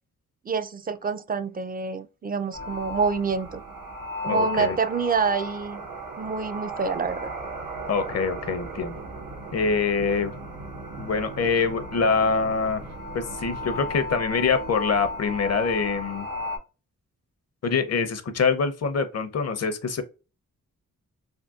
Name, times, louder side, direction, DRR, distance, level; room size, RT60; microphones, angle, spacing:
voice 1, 0.5-3.6 4.2-5.8 6.2-7.3, right 5 dB, 25° right, 0.4 m, -27 dB
sound 1, 2.5-16.6, left 1 dB, 75° right, 1.0 m, -35 dB
voice 2, 4.3-4.8 7.9-9.0 9.5-10.3 11.0-12.8 13.1-16.3 17.6-20.0, left 5 dB, 50° left, 0.7 m, -25 dB
3.6 x 2.2 x 2.4 m
cardioid pair, 45°, 33 cm